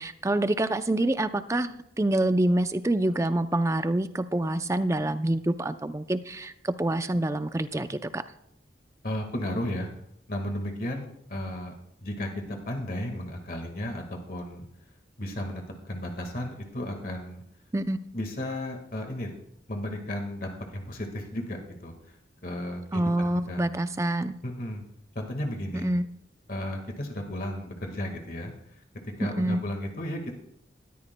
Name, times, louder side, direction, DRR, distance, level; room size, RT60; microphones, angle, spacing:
voice 1, 0.0-8.2 17.7-18.0 22.9-24.4 25.8-26.1 29.2-29.6, right 1 dB, 15° right, 11 dB, 0.5 m, -26 dB
voice 2, 9.0-9.9 10.3-11.7 12.0-14.7 15.2-17.4 18.1-19.3 19.7-21.9 22.4-23.6 24.4-24.8 25.2-25.9 26.5-28.5 29.2-30.3, left 1 dB, 50° left, 3 dB, 1.7 m, -34 dB
19.5 x 13.5 x 2.2 m, 0.75 s
head